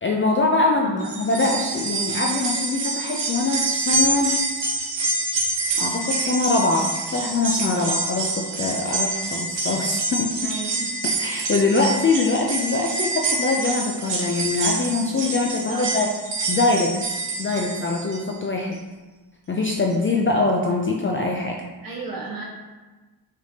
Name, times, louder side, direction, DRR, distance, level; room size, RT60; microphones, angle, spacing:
voice 1, 0.0-4.3 5.8-10.5 11.2-16.1 16.5-18.8 19.5-21.6, left 3 dB, 30° left, 0 dB, 0.3 m, -23 dB
sound 1, 1.0-18.3 18.7-18.8 19.9-20.0, right 3 dB, 65° right, 1.0 m, -27 dB
voice 2, 10.4-10.9 15.5-15.8 21.8-22.5, right 3 dB, 45° right, -3 dB, 1.3 m, -33 dB
4.9 x 3.3 x 2.8 m, 1.2 s
cardioid pair, 90°, 47 cm